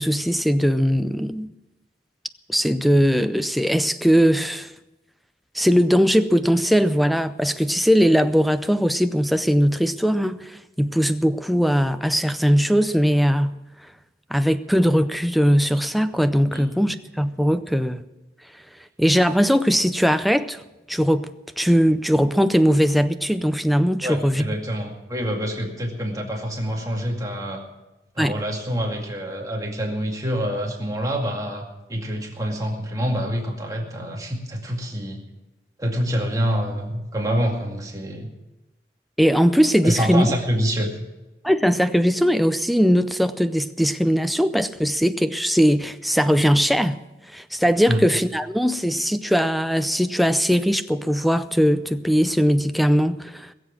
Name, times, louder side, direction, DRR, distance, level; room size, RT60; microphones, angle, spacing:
voice 1, 0.0-1.5 2.5-4.7 5.5-13.6 14.3-18.0 19.0-20.6 20.9-21.3 21.6-24.5 28.2-28.4 39.2-40.3 41.4-47.0 47.3-53.5, equal, ahead, 0.5 m, -20 dB
voice 2, 24.0-27.6 28.2-35.2 35.8-38.3 39.8-40.9 47.9-48.0, equal, 20° right, 2.2 m, -26 dB
21.0 x 7.6 x 7.4 m
head